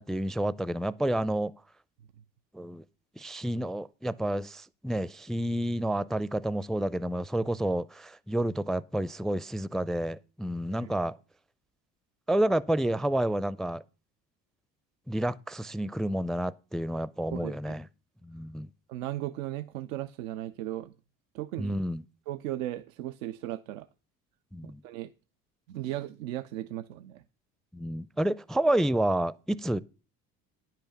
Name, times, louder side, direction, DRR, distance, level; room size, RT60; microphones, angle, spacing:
voice 1, 0.0-1.5 2.5-2.8 3.2-11.2 12.3-13.8 15.1-17.9 18.2-18.7 21.6-22.0 24.5-24.8 27.7-29.8, right 1 dB, ahead, 0.4 m, -29 dB
voice 2, 17.3-17.8 18.9-20.9 21.3-21.8 22.3-23.9 24.8-25.1 25.7-27.2, right 14 dB, 85° right, 0.6 m, -36 dB
10.0 x 5.9 x 6.9 m
hypercardioid pair, 65°, 39 cm